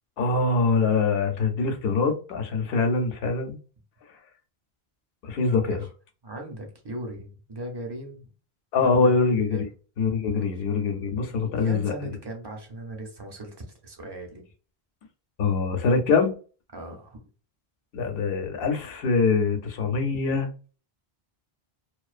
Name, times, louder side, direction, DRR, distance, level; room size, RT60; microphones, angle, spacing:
voice 1, 0.2-3.6 5.2-5.8 8.7-9.7 10.0-11.9 15.4-16.3 17.9-20.5, left 4 dB, 70° left, 0.8 m, -24 dB
voice 2, 6.2-8.3 8.8-9.2 9.5-9.6 10.3-10.5 11.6-14.4 16.7-17.2, right 1 dB, 35° right, 0.5 m, -38 dB
2.4 x 2.1 x 2.4 m
omnidirectional pair, 1.1 m